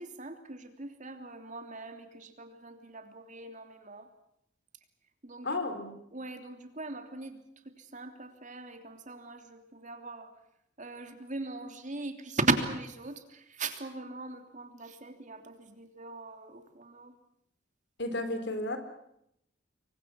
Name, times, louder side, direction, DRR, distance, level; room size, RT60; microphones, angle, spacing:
voice 1, 0.0-4.1 5.2-5.5 6.1-7.4 7.7-10.3 10.8-17.1, right 3 dB, 45° right, 7 dB, 3.1 m, -38 dB
voice 2, 5.4-5.9 18.0-18.8, left 2 dB, 65° left, 9 dB, 4.2 m, -32 dB
28.0 x 24.0 x 6.3 m, 0.75 s
head